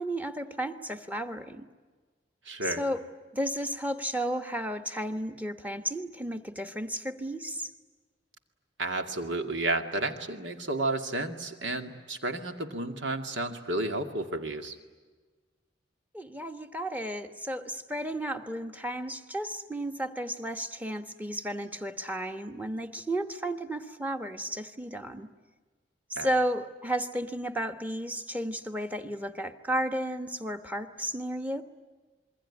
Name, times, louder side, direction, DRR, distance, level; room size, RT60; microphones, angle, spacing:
voice 1, 0.0-1.7 2.7-3.0 3.3-7.7 16.1-25.3 26.1-31.6, right 1 dB, 10° right, 8 dB, 1.2 m, -33 dB
voice 2, 2.5-2.8 8.8-14.8 26.2-26.3, right 2 dB, 80° right, 6 dB, 2.2 m, -32 dB
27.5 x 22.0 x 9.9 m, 1.3 s
head